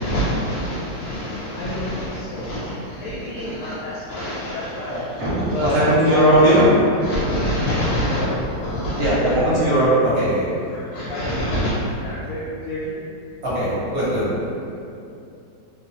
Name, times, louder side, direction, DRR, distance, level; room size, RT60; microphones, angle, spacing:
voice 1, 0.0-6.5 7.0-9.3 10.7-12.9, equal, 70° left, -8 dB, 1.0 m, -26 dB
voice 2, 4.9-6.7 9.0-10.4 13.4-14.2, equal, 50° right, -10 dB, 0.8 m, -18 dB
2.9 x 2.2 x 2.6 m, 2.6 s
omnidirectional pair, 1.8 m